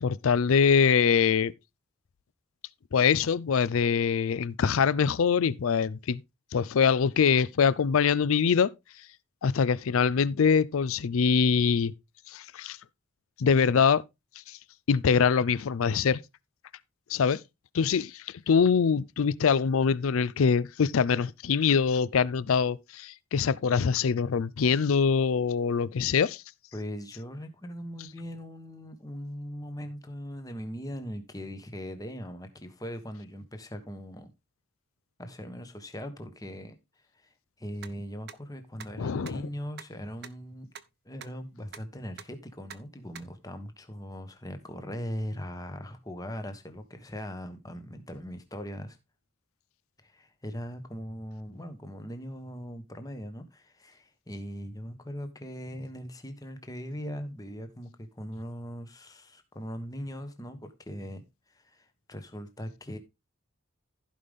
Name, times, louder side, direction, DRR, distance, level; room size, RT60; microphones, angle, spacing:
voice 1, 0.0-1.5 2.9-6.2 6.5-8.7 9.4-11.9 12.3-12.8 13.4-14.0 14.5-14.6 14.9-16.2 17.1-17.4 17.7-26.4 39.0-39.4, left 6 dB, 75° left, 0.4 m, -24 dB
voice 2, 26.7-34.3 35.2-36.8 37.1-40.7 41.0-49.0 50.0-61.2 61.5-63.0, equal, 15° left, 1.2 m, -40 dB
sound 1, 37.8-37.9 38.3-38.4 38.8-38.9 39.3-39.4 39.8-39.9 40.2-40.3 40.7-40.8 41.2-41.3 41.7-41.8 42.2-42.3 42.7-42.8 43.1-43.2, right 7 dB, 50° right, 0.7 m, -42 dB
15.0 x 5.2 x 3.5 m
head